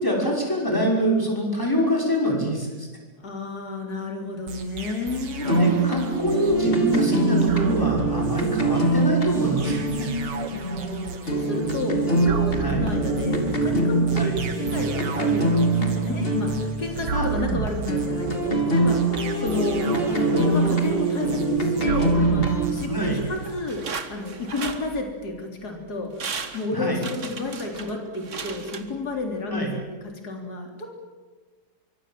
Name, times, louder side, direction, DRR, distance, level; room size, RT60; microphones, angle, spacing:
voice 1, 0.0-2.9 5.4-10.1 12.6-12.8 14.1-14.4 17.1-17.3 22.8-23.2 26.7-27.0 29.5-29.7, right 1 dB, 10° left, -1 dB, 6.1 m, -25 dB
voice 2, 3.2-5.7 10.5-30.9, left 2 dB, 65° left, 3 dB, 4.1 m, -32 dB
sound 1, 4.5-23.6, right 5 dB, 85° right, 2.3 m, -34 dB
sound 2, 5.4-17.5 17.9-22.7, right 2 dB, 30° left, 3.2 m, -23 dB
sound 3, 23.4-25.4 25.8-25.9 26.2-29.4 29.7-29.8, right 5 dB, 45° right, 1.7 m, -36 dB
25.5 x 24.5 x 7.6 m, 1.3 s
omnidirectional pair, 1.8 m